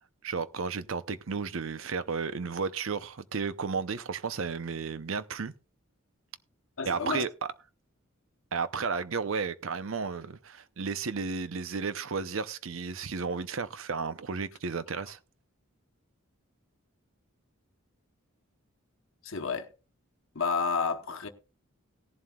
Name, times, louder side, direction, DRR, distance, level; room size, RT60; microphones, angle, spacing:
voice 1, 0.2-5.5 6.9-7.3 8.5-15.2, right 5 dB, 70° right, 0.7 m, -33 dB
voice 2, 6.8-7.2 19.2-19.7 20.3-21.3, left 5 dB, 65° left, 1.0 m, -30 dB
17.5 x 11.0 x 2.3 m
head